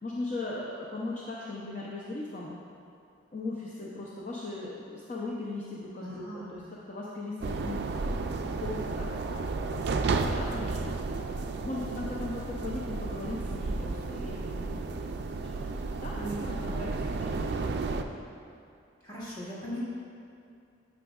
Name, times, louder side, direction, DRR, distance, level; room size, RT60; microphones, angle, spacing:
voice 1, 0.0-2.6 3.3-11.2 11.6-15.1 15.5-17.5 17.9-18.1, left 2 dB, 40° left, -5 dB, 0.6 m, -39 dB
voice 2, 6.0-6.6 16.1-16.8 19.0-19.8, equal, 20° left, -9 dB, 1.6 m, -39 dB
sound 1, 7.4-18.0, right 3 dB, 55° right, 0.3 m, -32 dB
9.5 x 6.1 x 2.3 m, 2.6 s
head